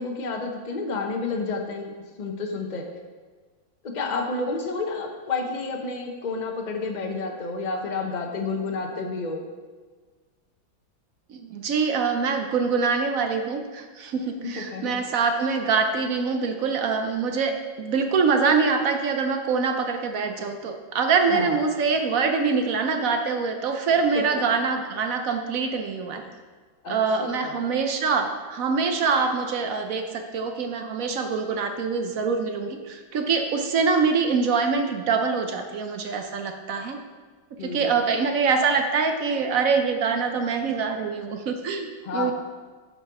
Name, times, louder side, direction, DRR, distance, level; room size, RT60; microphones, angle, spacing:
voice 1, 0.0-1.9 2.2-2.9 3.8-9.4 14.4-15.0 21.3-21.6 24.1-24.6 26.8-27.7 37.6-38.1 42.0-42.3, left 3 dB, 60° left, 3 dB, 0.4 m, -30 dB
voice 2, 11.3-26.2 26.9-37.0 37.6-42.3, right 5 dB, 65° right, 5 dB, 0.8 m, -24 dB
8.3 x 5.4 x 6.0 m, 1.4 s
omnidirectional pair, 2.1 m